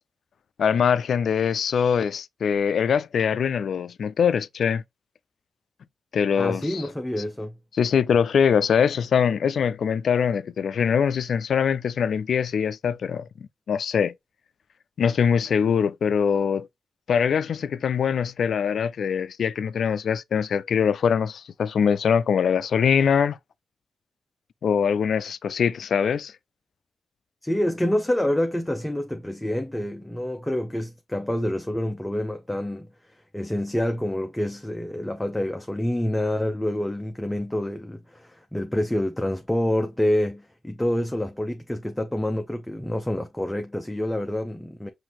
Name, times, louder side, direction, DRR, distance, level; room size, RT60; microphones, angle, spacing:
voice 1, 0.6-4.8 6.1-6.8 7.8-13.3 13.7-14.1 15.0-16.7 17.1-23.4 24.6-26.3, left 7 dB, 75° left, 0.3 m, -23 dB
voice 2, 6.4-7.5 27.4-44.9, left 1 dB, 10° left, 0.5 m, -27 dB
5.7 x 2.6 x 2.9 m
cardioid pair, 85°, 0 cm